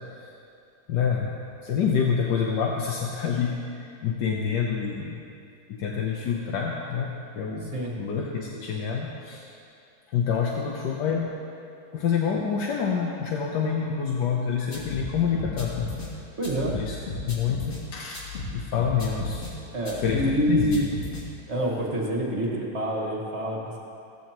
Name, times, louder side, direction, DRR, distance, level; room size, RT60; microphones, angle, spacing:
voice 1, 0.9-1.3 1.6-5.2 5.7-9.5 10.1-11.3 11.9-15.9 16.7-17.0 17.3-19.5 19.9-20.8, left 6 dB, 85° left, -1 dB, 1.5 m, -27 dB
sound 1, 14.7-16.1 16.4-17.8 18.1-19.5 19.9-21.2, left 3 dB, 50° left, 2.7 m, -35 dB
voice 2, 16.4-16.8 19.7-20.9 21.5-23.8, right 1 dB, 40° right, -2 dB, 1.9 m, -27 dB
16.5 x 14.5 x 3.0 m, 2.6 s
omnidirectional pair, 1.8 m